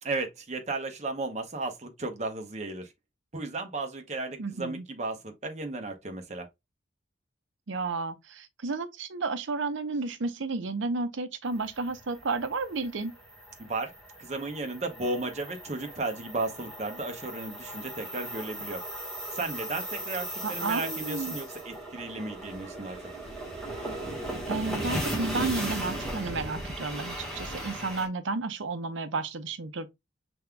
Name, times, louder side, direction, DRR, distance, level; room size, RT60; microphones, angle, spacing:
voice 1, 0.0-2.9 3.3-6.5 13.6-13.9 14.2-18.8 19.3-23.0, right 2 dB, 35° right, 0.8 m, -34 dB
voice 2, 4.4-4.9 7.7-13.1 20.4-21.4 24.5-29.9, right 3 dB, 75° right, 0.6 m, -32 dB
sound 1, 11.6-28.1, right 1 dB, 5° left, 1.2 m, -37 dB
5.4 x 3.4 x 2.2 m
head